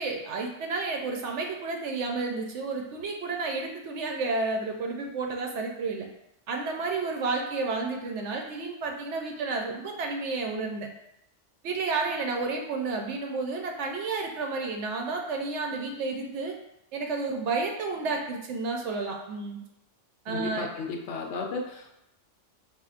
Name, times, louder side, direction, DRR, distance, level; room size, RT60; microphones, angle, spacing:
voice 1, 0.0-6.1 6.5-10.9 11.6-16.5 16.9-19.6 20.3-20.7, right 3 dB, 70° right, 2 dB, 0.9 m, -31 dB
voice 2, 20.3-21.9, left 3 dB, 70° left, 1 dB, 0.9 m, -34 dB
5.0 x 2.5 x 2.4 m, 0.81 s
omnidirectional pair, 1.3 m